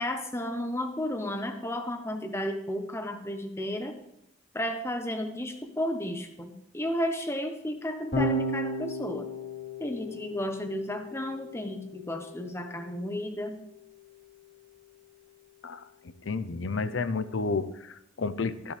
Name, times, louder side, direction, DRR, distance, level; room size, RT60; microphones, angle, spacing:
voice 1, 0.0-3.9 4.5-9.3 9.8-13.6, left 1 dB, 15° left, 6 dB, 1.0 m, -33 dB
Electric guitar / Bass guitar, 8.1-14.5, equal, 60° left, 3.9 m, -36 dB
voice 2, 16.2-18.7, left 4 dB, 80° left, 13 dB, 0.7 m, -31 dB
14.0 x 10.5 x 3.4 m, 0.81 s
head